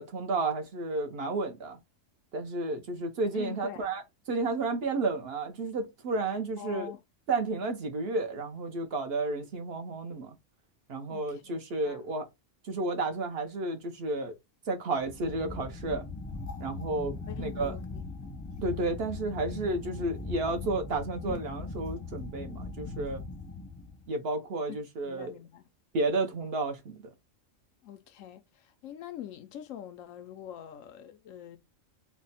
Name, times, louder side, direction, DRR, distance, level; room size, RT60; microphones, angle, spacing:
voice 1, 0.0-1.8 2.3-4.0 4.3-6.9 7.3-10.3 10.9-12.3 12.6-14.3 14.7-16.0 16.6-17.7 18.6-23.2 24.1-25.3 25.9-26.9, right 3 dB, 60° right, 0.8 m, -32 dB
voice 2, 3.3-4.0 6.6-7.0 11.1-12.0 17.3-18.3 24.7-24.8 25.0-25.7 27.8-31.6, left 10 dB, 90° left, 1.0 m, -44 dB
sound 1, 14.9-24.1, left 3 dB, 20° left, 0.5 m, -40 dB
3.3 x 2.1 x 4.0 m
omnidirectional pair, 1.3 m